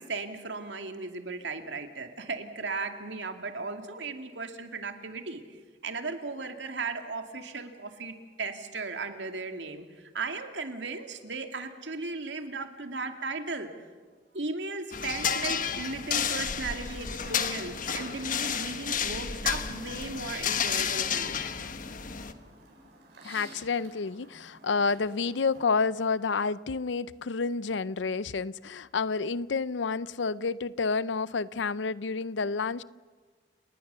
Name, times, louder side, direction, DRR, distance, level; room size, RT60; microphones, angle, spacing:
voice 1, 0.0-5.4 5.8-13.7 14.3-21.4, right 3 dB, 80° right, 2.4 m, -36 dB
sound 1, 14.9-22.3, left 7 dB, 50° left, 1.2 m, -31 dB
Chirp tweet, 15.2-25.6, right 2 dB, 65° right, 7.5 m, -54 dB
voice 2, 23.2-32.8, left 4 dB, 90° left, 0.6 m, -29 dB
30.0 x 19.5 x 6.9 m
head